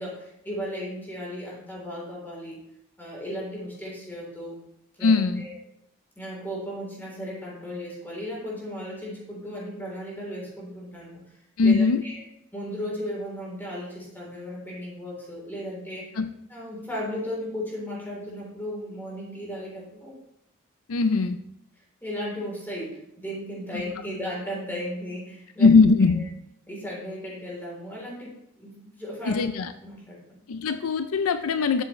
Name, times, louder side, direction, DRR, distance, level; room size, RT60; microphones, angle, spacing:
voice 1, 0.0-2.6 3.0-4.6 5.0-5.6 6.2-12.2 12.5-16.1 16.5-20.2 22.0-25.7 26.1-26.2 26.7-29.5 29.8-30.4, equal, 10° left, -4 dB, 3.5 m, -35 dB
voice 2, 5.0-5.4 11.6-12.0 16.2-16.3 20.9-21.4 23.7-23.8 25.6-26.2 29.3-29.7 30.5-31.8, left 4 dB, 80° left, 10 dB, 0.5 m, -20 dB
12.0 x 7.2 x 3.2 m, 0.79 s
head